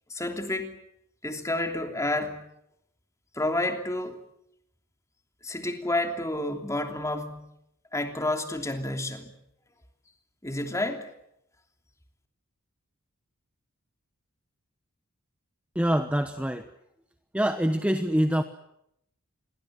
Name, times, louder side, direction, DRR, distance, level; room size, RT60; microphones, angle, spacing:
voice 1, 0.1-0.7 1.2-2.4 3.3-4.2 5.4-7.5 7.9-9.3 10.4-11.1, left 1 dB, 15° left, 5 dB, 3.1 m, -30 dB
voice 2, 15.7-16.7 17.3-18.4, equal, 5° right, 8 dB, 1.1 m, -25 dB
28.5 x 22.5 x 7.8 m, 0.77 s
head